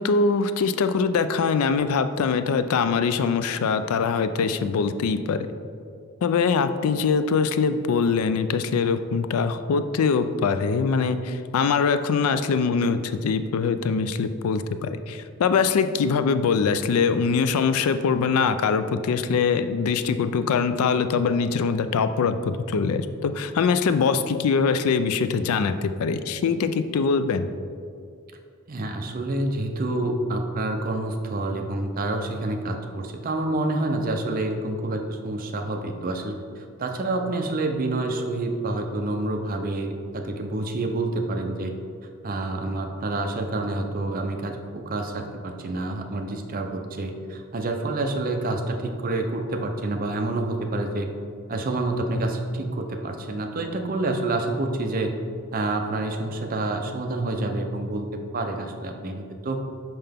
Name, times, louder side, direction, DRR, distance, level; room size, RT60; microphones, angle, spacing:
voice 1, 0.0-5.5 6.2-27.5, left 5 dB, 80° left, 11 dB, 0.3 m, -23 dB
voice 2, 28.7-41.7 42.2-51.1 51.5-55.1 55.5-59.6, right 2 dB, 40° right, 4 dB, 0.5 m, -28 dB
5.7 x 5.4 x 3.5 m, 2.3 s
head